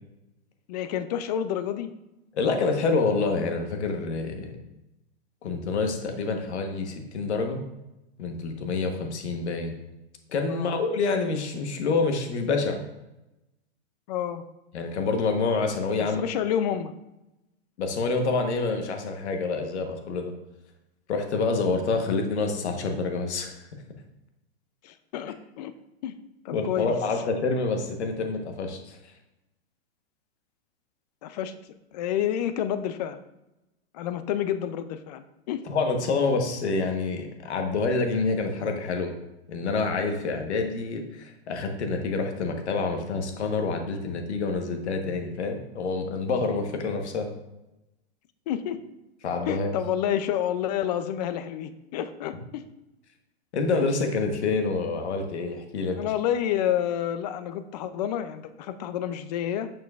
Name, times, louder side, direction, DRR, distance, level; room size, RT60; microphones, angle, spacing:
voice 1, 0.7-1.9 10.5-10.8 14.1-14.4 16.0-16.9 24.8-25.7 26.0-26.1 26.4-26.9 31.2-31.6 31.9-33.2 33.9-35.6 48.5-48.8 49.5-52.6 56.0-59.7, left 10 dB, 40° left, 11 dB, 0.4 m, -29 dB
voice 2, 2.3-4.5 5.4-7.6 8.2-9.8 10.3-12.8 14.7-16.2 17.8-20.3 21.1-23.5 26.5-29.0 35.7-39.1 39.5-47.3 49.2-49.7 53.5-56.0, left 4 dB, 85° left, 4 dB, 1.2 m, -27 dB
6.9 x 6.1 x 2.4 m, 0.94 s
hypercardioid pair, 150°, 33 cm